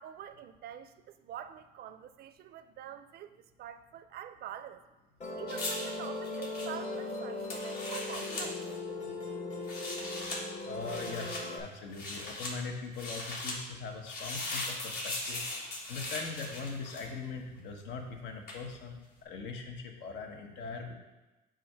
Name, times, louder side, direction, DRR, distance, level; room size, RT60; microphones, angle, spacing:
voice 1, 0.0-4.8 5.4-8.6, right 10 dB, 55° right, 11 dB, 0.4 m, -45 dB
Musical instrument, 5.2-11.6, left 2 dB, 40° left, 1.2 m, -39 dB
sound 1, 5.5-8.5 9.5-10.4 10.8-11.4 11.9-12.5 12.9-13.6 14.1-17.3 18.5-18.6, left 2 dB, 55° left, 1.6 m, -39 dB
voice 2, 10.6-15.4 15.9-20.9, left 4 dB, 70° left, 3 dB, 1.0 m, -41 dB
7.3 x 2.5 x 5.6 m, 1.1 s
cardioid pair, 100°, 19 cm